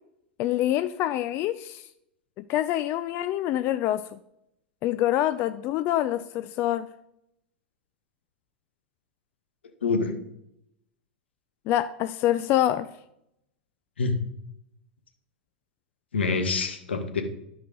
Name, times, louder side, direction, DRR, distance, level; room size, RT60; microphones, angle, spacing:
voice 1, 0.4-1.8 2.4-4.2 4.8-6.9 11.7-12.9, left 13 dB, 45° left, 12 dB, 0.4 m, -26 dB
voice 2, 9.8-10.1 14.0-14.2 16.1-17.2, left 4 dB, 90° left, 7 dB, 1.3 m, -26 dB
12.0 x 4.8 x 3.9 m, 0.79 s
hypercardioid pair, 105°, 6 cm